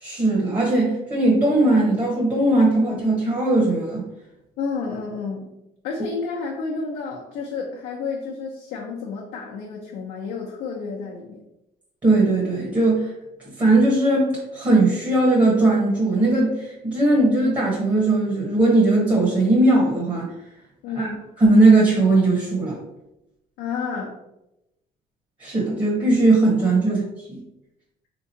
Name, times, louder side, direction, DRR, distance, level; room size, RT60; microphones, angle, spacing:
voice 1, 0.0-4.0 12.0-13.1 13.6-20.3 21.0-21.1 21.4-22.8 25.4-27.0 27.3-27.4, right 2 dB, 25° right, -4 dB, 0.9 m, -19 dB
voice 2, 4.6-5.5 5.8-11.4 20.8-21.2 23.6-24.1 26.8-26.9, left 4 dB, 85° left, -2 dB, 0.6 m, -30 dB
3.5 x 3.0 x 2.7 m, 0.89 s
cardioid pair, 110°, 17 cm